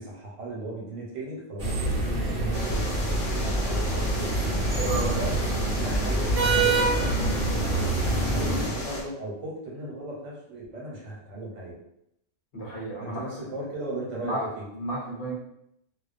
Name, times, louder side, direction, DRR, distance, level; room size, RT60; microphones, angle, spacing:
voice 1, 0.0-2.9 3.2-4.4 4.8-5.4 5.8-7.4 8.2-11.8 13.0-14.6, right 2 dB, 75° right, -3 dB, 1.1 m, -36 dB
sound 1, 1.6-8.7, right 2 dB, 55° right, 0.8 m, -26 dB
sound 2, 2.5-9.0, left 2 dB, 90° left, 1.0 m, -35 dB
voice 2, 4.8-5.1 12.5-13.2 14.2-14.5 14.7-15.3, right 2 dB, 60° left, -3 dB, 0.8 m, -32 dB
2.3 x 2.2 x 2.5 m, 0.76 s
omnidirectional pair, 1.3 m